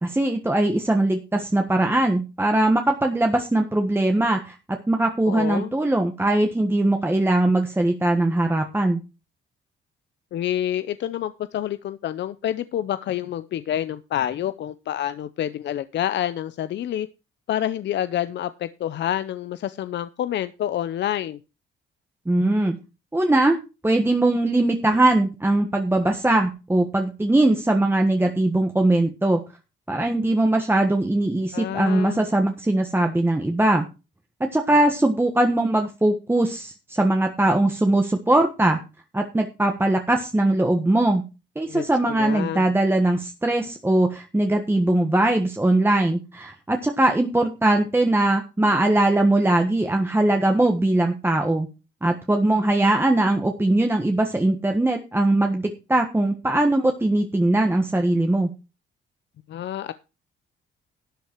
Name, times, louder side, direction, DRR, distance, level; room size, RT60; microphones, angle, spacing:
voice 1, 0.0-4.6 4.9-9.0 22.3-22.8 23.1-29.4 29.9-33.8 34.5-38.8 39.1-41.2 41.5-51.7 52.0-58.5, right 1 dB, 10° right, 4 dB, 1.3 m, -21 dB
voice 2, 5.3-5.7 10.3-17.1 17.5-21.4 31.5-32.2 41.7-42.6 59.5-59.9, left 11 dB, 65° left, 14 dB, 0.6 m, -28 dB
12.5 x 8.2 x 4.5 m, 0.30 s
cardioid pair, 90°, 20 cm